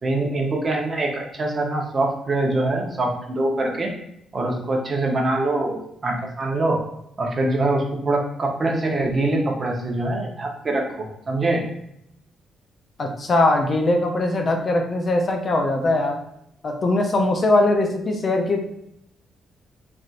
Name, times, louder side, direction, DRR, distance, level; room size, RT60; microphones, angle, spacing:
voice 1, 0.0-3.9 4.3-6.8 7.2-11.6, right 2 dB, 35° right, 0 dB, 0.8 m, -24 dB
voice 2, 13.0-16.2 16.6-18.6, left 2 dB, 40° left, 4 dB, 0.5 m, -21 dB
3.3 x 2.6 x 2.4 m, 0.76 s
cardioid pair, 90°, 0 cm